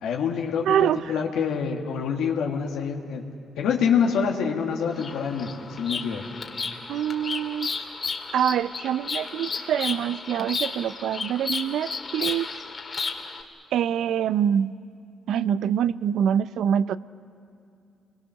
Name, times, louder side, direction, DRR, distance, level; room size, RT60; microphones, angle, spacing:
voice 1, 0.0-3.2 3.6-6.4, left 6 dB, 85° left, 0 dB, 1.8 m, -26 dB
voice 2, 0.7-1.0 6.9-7.7 8.3-12.5 13.7-14.7 15.3-17.0, right 9 dB, 75° right, 16 dB, 0.5 m, -25 dB
Bird vocalization bird call bird song, 4.9-13.4, left 4 dB, 40° left, 2.1 m, -33 dB
29.0 x 22.0 x 6.5 m, 2.5 s
cardioid pair, 90°, 0 cm